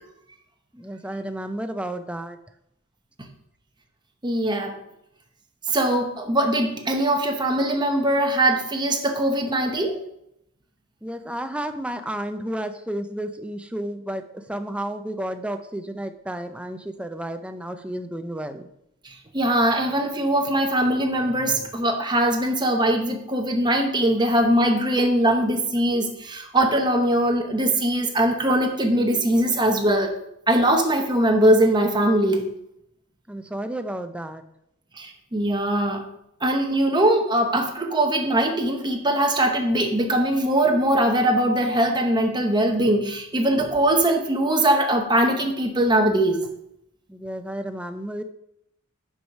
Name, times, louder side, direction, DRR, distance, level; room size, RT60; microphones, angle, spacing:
voice 1, 0.7-2.4 11.0-18.7 33.3-34.4 47.1-48.2, right 1 dB, 5° right, 8 dB, 0.4 m, -32 dB
voice 2, 4.2-4.8 5.7-10.0 19.0-30.2 30.5-32.5 34.9-36.0 36.4-46.4, right 1 dB, 20° right, 3 dB, 0.9 m, -21 dB
6.2 x 4.8 x 5.4 m, 0.78 s
head